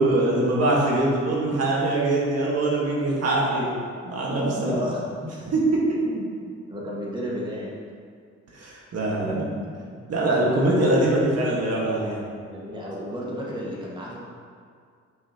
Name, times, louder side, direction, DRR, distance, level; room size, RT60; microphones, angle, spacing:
voice 1, 0.0-3.7 4.0-4.7 5.5-5.6 5.9-6.0 8.5-9.4 10.1-12.2, right 2 dB, 55° right, -4 dB, 1.6 m, -23 dB
voice 2, 4.6-5.0 6.0-7.8 9.1-9.9 10.2-10.3 10.7-11.4 12.5-14.2, equal, 15° right, -5 dB, 1.7 m, -32 dB
9.7 x 5.7 x 2.9 m, 2.2 s
cardioid pair, 90°, 30 cm